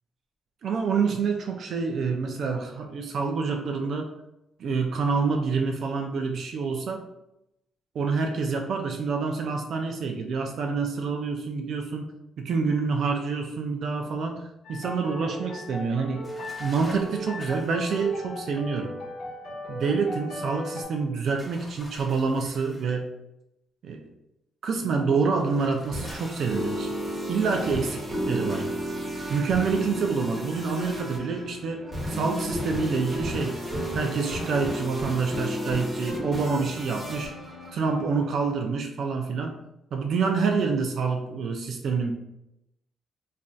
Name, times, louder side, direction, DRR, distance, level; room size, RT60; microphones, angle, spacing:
voice 1, 0.6-4.1 4.6-7.0 7.9-12.1 12.4-16.3 16.6-18.9 19.7-23.1 23.8-24.1 24.6-26.9 27.3-28.7 29.3-33.6 33.9-37.3 37.7-39.5 39.9-42.1, right 5 dB, 65° right, 3 dB, 0.3 m, -27 dB
sound 1, 14.6-20.8, left 1 dB, 85° left, 1.2 m, -38 dB
sound 2, 16.2-17.8 21.4-22.9 25.3-27.0 28.5-28.9, left 1 dB, 10° left, 0.8 m, -47 dB
sound 3, 25.7-38.5, equal, 30° right, 1.0 m, -33 dB
3.1 x 2.6 x 2.3 m, 0.86 s
cardioid pair, 90°, 0 cm